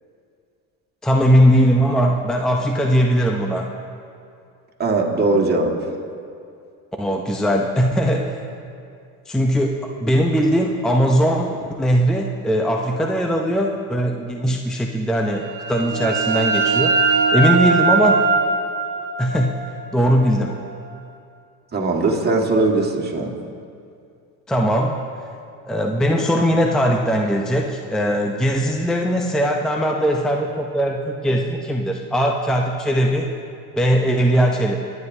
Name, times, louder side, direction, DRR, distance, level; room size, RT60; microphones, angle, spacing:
voice 1, 1.0-3.7 7.0-8.4 9.3-17.0 17.3-18.2 19.2-19.6 19.9-20.6 24.5-25.0 25.7-33.3 33.8-34.8, equal, ahead, 1 dB, 0.6 m, -19 dB
voice 2, 4.8-5.7 21.7-23.3, right 3 dB, 20° right, -1 dB, 1.8 m, -19 dB
sound 1, 15.4-20.9, right 4 dB, 70° right, 1.8 m, -21 dB
25.5 x 9.6 x 2.7 m, 2.4 s
supercardioid pair, 100°, 43 cm